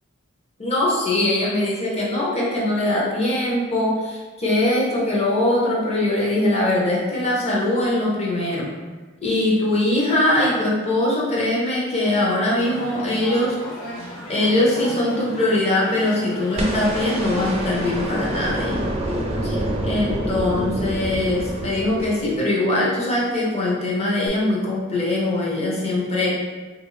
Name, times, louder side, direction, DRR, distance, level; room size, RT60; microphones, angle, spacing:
voice 1, 0.6-8.7 9.2-13.6 14.3-18.8 19.4-26.3, left 1 dB, 30° left, -5 dB, 0.8 m, -22 dB
sound 1, 12.6-17.8, equal, 85° left, 0.7 m, -35 dB
sound 2, 16.6-22.7 24.3-24.4, right 1 dB, 30° right, 0.5 m, -27 dB
3.5 x 2.6 x 3.0 m, 1.3 s
head